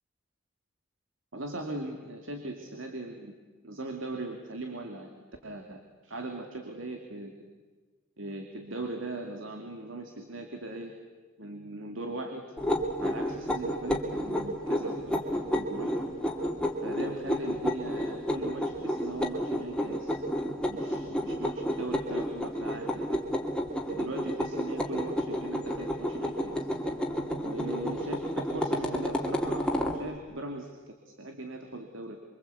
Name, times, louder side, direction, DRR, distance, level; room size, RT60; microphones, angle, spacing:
voice 1, 1.3-3.4 3.6-7.4 8.2-10.9 11.4-12.4 13.0-16.0 16.8-20.1 20.7-23.2 23.9-26.7 27.4-32.2, right 2 dB, 75° right, 4 dB, 2.5 m, -39 dB
sound 1, 12.6-30.0, equal, 5° left, 2.4 m, -31 dB
28.5 x 24.0 x 8.4 m, 1.3 s
head